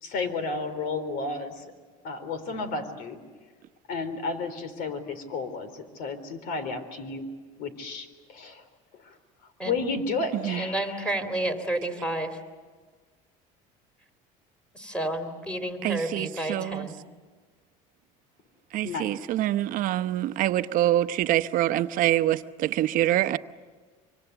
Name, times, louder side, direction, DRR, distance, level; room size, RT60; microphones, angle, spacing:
voice 1, 0.0-1.6 2.0-3.2 3.9-7.3 7.6-8.6 9.1-9.2 9.6-10.9 18.8-19.1, left 3 dB, 65° left, 11 dB, 3.8 m, -32 dB
voice 2, 10.6-12.4 14.7-17.0, right 1 dB, 5° left, 6 dB, 3.4 m, -30 dB
voice 3, 15.8-16.9 18.7-23.4, right 13 dB, 60° right, 11 dB, 0.9 m, -25 dB
25.5 x 25.0 x 8.1 m, 1.5 s
cardioid pair, 120°, 16 cm